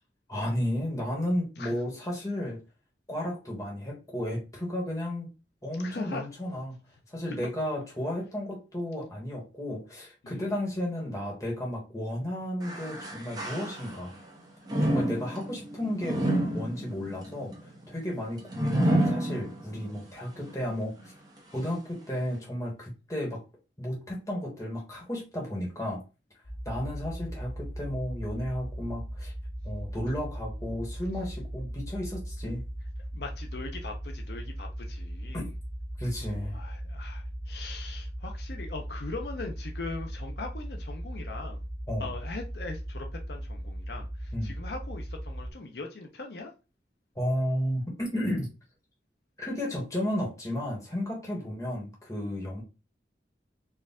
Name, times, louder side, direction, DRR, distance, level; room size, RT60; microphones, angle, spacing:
voice 1, 0.3-2.6 3.1-5.3 5.6-6.8 7.1-14.1 14.8-21.1 21.5-23.4 23.8-26.0 26.6-29.3 29.6-32.6 35.3-35.5 36.0-36.6 41.9-42.1 44.3-44.5 47.1-48.5 49.4-52.6, left 1 dB, 20° left, 1.3 m, -33 dB
voice 2, 5.8-6.3 10.2-10.4 33.1-35.5 36.2-41.6 42.0-46.5, left 3 dB, 65° left, 0.6 m, -40 dB
sound 1, 12.6-14.2 14.7-19.9 20.4-20.5 21.4-21.5, right 1 dB, 20° right, 1.1 m, -29 dB
sound 2, 26.4-45.5, equal, 85° left, 1.4 m, -38 dB
4.4 x 2.5 x 3.6 m
head